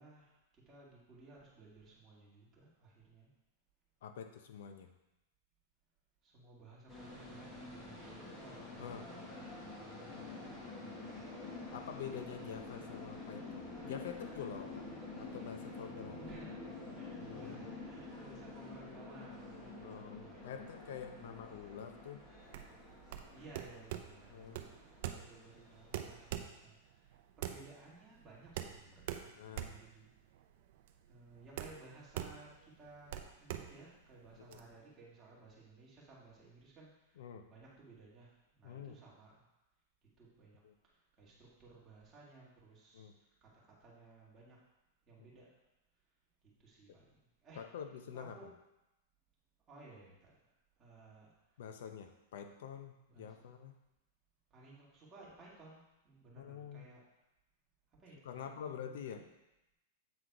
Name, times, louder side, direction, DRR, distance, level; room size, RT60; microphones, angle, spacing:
voice 1, 0.0-3.3 6.2-11.2 16.2-20.7 21.2-21.6 23.2-30.1 31.1-39.5 40.2-44.6 45.1-45.5 46.6-47.6 48.1-48.5 49.7-50.3 50.8-51.4 53.1-53.5 54.5-57.0 58.0-59.2, right 3 dB, 15° right, -5 dB, 1.9 m, -58 dB
voice 2, 4.0-4.9 8.8-9.1 10.1-10.5 11.7-14.9 15.1-16.2 17.2-17.6 19.8-22.2 24.3-24.6 29.3-29.7 34.4-34.6 37.2-37.5 38.6-39.0 40.6-40.7 42.9-43.1 46.9-47.0 47.5-48.4 51.6-53.7 56.4-56.8 58.2-59.3, left 8 dB, 70° left, 7 dB, 0.6 m, -47 dB
sound 1, 6.9-26.4, left 3 dB, 15° left, 1.5 m, -48 dB
sound 2, 22.4-34.6, right 11 dB, 55° right, 0.5 m, -44 dB
8.0 x 3.9 x 4.6 m, 0.94 s
supercardioid pair, 160°, 0 cm